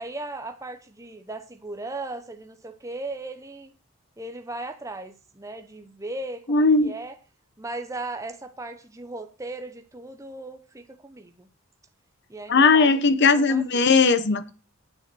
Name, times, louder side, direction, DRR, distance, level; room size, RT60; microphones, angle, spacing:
voice 1, 0.0-3.7 4.2-7.1 7.6-11.5 12.3-12.9 13.2-13.9, right 2 dB, 15° right, 0.8 m, -37 dB
voice 2, 6.5-6.9 12.5-14.5, left 4 dB, 50° left, 0.8 m, -18 dB
9.0 x 7.1 x 6.1 m
head